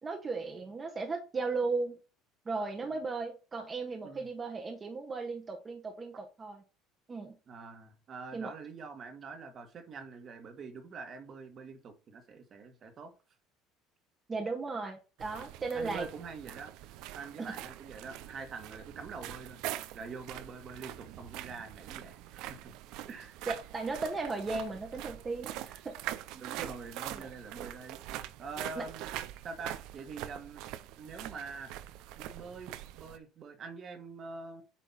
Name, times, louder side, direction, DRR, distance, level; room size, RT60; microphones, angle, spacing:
voice 1, 0.0-2.0 2.5-6.6 7.1-7.3 8.3-8.5 14.3-16.0 17.4-17.5 23.5-25.9 27.1-27.3 28.8-28.9, right 3 dB, 25° right, 1.1 m, -36 dB
voice 2, 7.5-13.1 15.7-16.7 17.1-22.7 23.1-23.4 26.3-28.0 28.4-29.1 29.4-30.6 31.0-31.7 32.2-34.6, right 4 dB, 40° right, 1.5 m, -45 dB
sound 1, 15.2-33.2, right 13 dB, 70° right, 0.6 m, -43 dB
8.7 x 2.9 x 5.5 m
cardioid pair, 115°, 0 cm